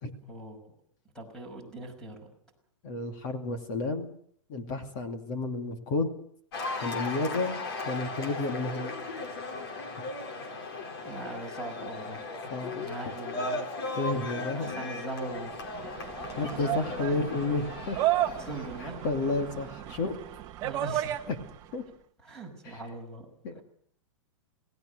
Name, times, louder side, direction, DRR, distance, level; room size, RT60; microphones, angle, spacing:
voice 1, 0.3-0.7 1.1-2.3 11.0-12.2 12.7-13.6 14.4-16.3 16.5-16.6 18.3-19.0 20.6-21.2 22.2-23.3, right 2 dB, 5° left, 4 dB, 5.8 m, -41 dB
voice 2, 2.8-4.1 4.5-6.2 6.8-8.9 12.5-12.9 14.0-14.8 16.3-18.0 18.8-20.2 21.3-21.4 21.7-21.8 22.6-22.8 23.4-23.6, left 3 dB, 35° left, 5 dB, 2.6 m, -31 dB
Cheering / Applause, 6.5-19.9, left 3 dB, 50° left, 4.7 m, -37 dB
sound 1, 15.3-21.7, right 14 dB, 20° right, 1.2 m, -33 dB
27.5 x 18.5 x 6.6 m, 0.65 s
supercardioid pair, 170°, 17 cm